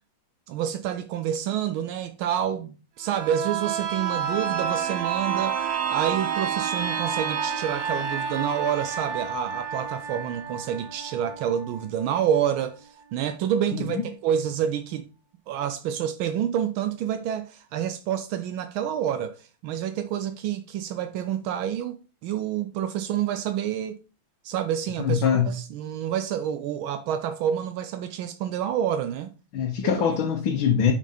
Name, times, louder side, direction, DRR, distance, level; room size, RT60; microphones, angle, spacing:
voice 1, 0.5-15.1 15.5-24.0 24.4-29.3 29.8-30.2, right 9 dB, 80° right, 1.4 m, -28 dB
sound 1, 3.0-12.6 13.0-13.1, right 7 dB, 60° right, 1.2 m, -29 dB
voice 2, 25.0-25.5 29.5-30.9, left 7 dB, 75° left, 1.7 m, -23 dB
6.1 x 5.2 x 4.2 m
omnidirectional pair, 2.2 m